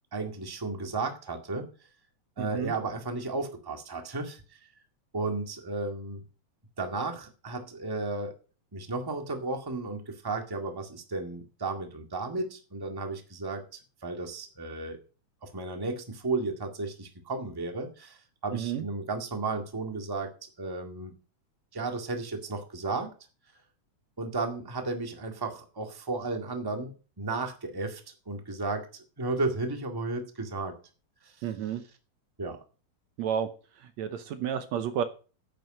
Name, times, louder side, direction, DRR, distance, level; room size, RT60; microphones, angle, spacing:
voice 1, 0.1-1.7 2.4-4.6 5.1-6.2 6.8-8.3 8.7-13.6 14.0-15.0 15.4-21.1 21.7-23.1 24.2-28.0 28.2-30.7 31.2-31.5 32.4-32.6, right 3 dB, 10° right, 4 dB, 1.4 m, -34 dB
voice 2, 2.4-2.7 18.5-18.8 31.4-31.8 33.2-33.5 33.8-35.0, right 9 dB, 70° right, 10 dB, 2.0 m, -31 dB
9.9 x 9.2 x 6.5 m, 0.37 s
omnidirectional pair, 3.5 m